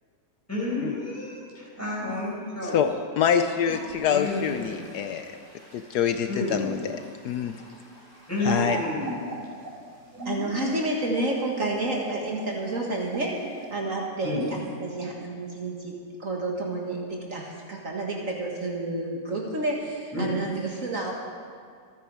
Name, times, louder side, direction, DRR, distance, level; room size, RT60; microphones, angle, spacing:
voice 1, 0.5-2.9 4.0-4.8 6.3-6.8 8.3-9.2 10.2-10.5 14.2-14.4 20.1-20.3, left 2 dB, 10° left, -6 dB, 5.1 m, -30 dB
voice 2, 3.2-5.3 5.7-7.0 7.2-7.5 8.4-8.8, left 8 dB, 75° left, 8 dB, 1.2 m, -25 dB
Toilet flush, 3.6-8.4, equal, 30° left, 4.5 m, -48 dB
sound 1, 8.3-13.8, right 3 dB, 70° right, 2.8 m, -40 dB
voice 3, 10.3-21.1, right 2 dB, 50° right, -1 dB, 1.9 m, -30 dB
26.0 x 9.4 x 4.8 m, 2.1 s
omnidirectional pair, 1.8 m